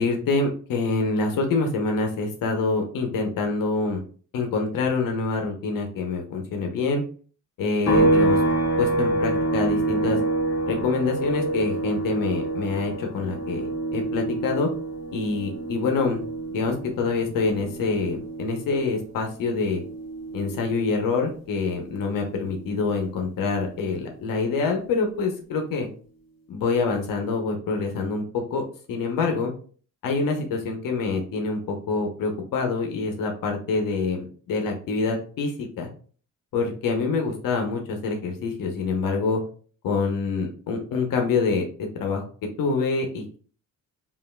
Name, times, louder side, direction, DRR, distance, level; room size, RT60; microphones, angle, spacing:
voice 1, 0.0-4.0 4.3-7.0 7.6-8.4 8.8-10.2 10.7-14.7 15.1-16.2 16.5-19.8 20.3-25.9 26.5-29.5 30.0-35.9 36.5-39.4 39.8-41.6 42.0-42.2 42.6-43.4, left 4 dB, 85° left, 3 dB, 0.8 m, -26 dB
sound 1, 7.9-21.4 21.7-23.9, right 2 dB, 50° left, 1.0 m, -27 dB
5.4 x 2.6 x 2.2 m, 0.43 s
wide cardioid pair, 165°, 32 cm